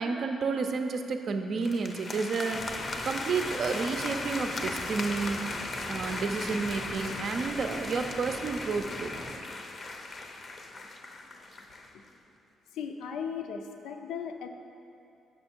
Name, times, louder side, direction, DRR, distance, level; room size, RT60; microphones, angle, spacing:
voice 1, 0.0-5.4 5.8-9.1, right 4 dB, 60° right, 6 dB, 0.5 m, -31 dB
sound 1, 1.6-11.9, left 2 dB, 40° left, 0.5 m, -37 dB
sound 2, 2.5-9.4, right 1 dB, 5° right, 0.7 m, -44 dB
voice 2, 12.7-14.5, left 7 dB, 85° left, 5 dB, 0.5 m, -37 dB
6.4 x 5.6 x 4.4 m, 2.6 s
cardioid pair, 90°, 0 cm